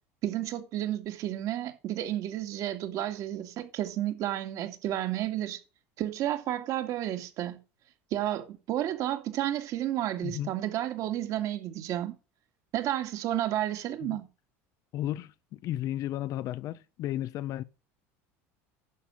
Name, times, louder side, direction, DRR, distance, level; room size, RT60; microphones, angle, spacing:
voice 1, 0.2-5.6 6.0-7.6 8.1-12.1 12.7-14.3, right 12 dB, 55° right, 2.4 m, -31 dB
voice 2, 10.2-10.5 14.0-14.2 14.9-17.6, left 13 dB, 50° left, 0.8 m, -34 dB
11.0 x 7.1 x 5.6 m
supercardioid pair, 115°, 7 cm